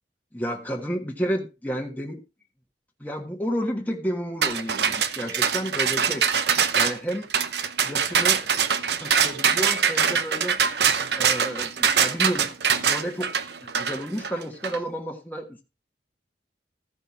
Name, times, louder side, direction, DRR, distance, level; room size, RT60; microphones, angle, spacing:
voice 1, 0.3-2.2 3.0-6.2 6.7-7.3 7.8-8.4 9.0-10.6 11.2-13.3 13.6-15.6, equal, 10° left, 1 dB, 1.4 m, -31 dB
sound 1, 4.4-14.8, right 7 dB, 70° right, 0.9 m, -23 dB
15.0 x 5.6 x 4.2 m, 0.28 s
head